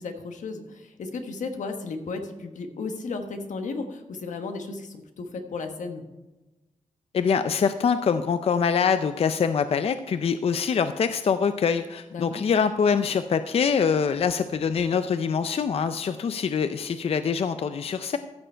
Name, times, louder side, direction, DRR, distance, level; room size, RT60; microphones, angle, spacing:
voice 1, 0.0-6.0 12.1-12.4, left 3 dB, 90° left, 6 dB, 1.2 m, -34 dB
voice 2, 7.1-18.2, left 6 dB, 55° left, 10 dB, 0.4 m, -24 dB
14.0 x 6.8 x 4.4 m, 1.1 s
wide cardioid pair, 130°, 12 cm